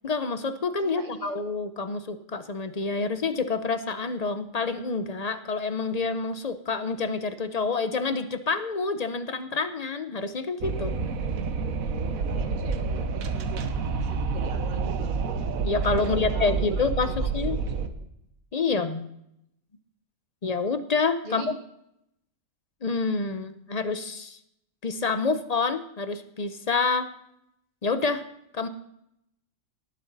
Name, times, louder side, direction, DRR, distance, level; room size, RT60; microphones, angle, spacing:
voice 1, 0.0-10.9 15.6-17.6 18.5-19.1 20.4-21.5 22.8-24.4 24.8-27.1 27.8-28.2 28.5-28.7, left 4 dB, 40° left, 10 dB, 0.6 m, -28 dB
voice 2, 0.8-1.4 12.1-15.1 16.0-17.3 17.8-18.1 21.2-21.5, right 3 dB, 35° right, 5 dB, 1.3 m, -42 dB
Wind, 10.6-17.9, right 4 dB, 75° right, 1.4 m, -28 dB
18.5 x 7.7 x 4.0 m, 0.78 s
omnidirectional pair, 1.5 m